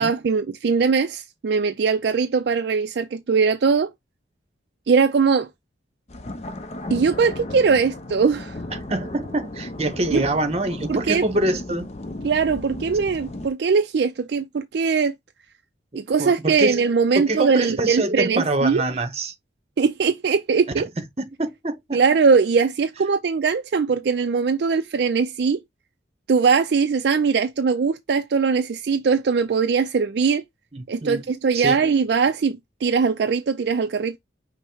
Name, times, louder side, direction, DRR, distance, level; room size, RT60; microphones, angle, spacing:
voice 1, 0.0-3.9 4.9-5.5 6.9-8.6 10.1-10.2 10.9-11.2 12.2-15.1 15.9-18.8 19.8-20.9 21.9-25.6 26.3-30.4 30.9-34.2, right 5 dB, 60° right, 0.4 m, -21 dB
sound 1, 6.1-13.5, left 2 dB, 35° left, 0.5 m, -35 dB
voice 2, 8.7-11.9 16.2-16.8 17.1-19.3 20.8-20.9 21.2-22.0 30.7-31.3 31.5-31.8, right 2 dB, 35° right, 0.8 m, -25 dB
5.5 x 2.0 x 4.5 m
head